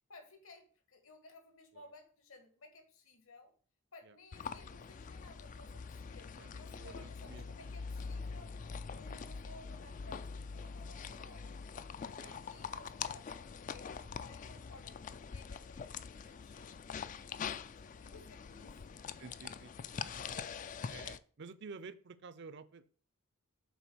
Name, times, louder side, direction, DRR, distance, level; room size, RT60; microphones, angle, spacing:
voice 1, 0.1-3.5 3.9-8.6 8.9-11.6 12.2-18.8, left 2 dB, 70° left, 6 dB, 1.7 m, -58 dB
sound 1, 4.3-21.2, left 6 dB, 35° left, 0.3 m, -44 dB
voice 2, 6.4-7.8 8.9-9.0 9.4-9.5 11.0-11.5 12.2-12.7 19.2-20.1 20.9-22.9, right 4 dB, 55° right, 15 dB, 0.6 m, -52 dB
7.0 x 4.2 x 6.2 m, 0.43 s
head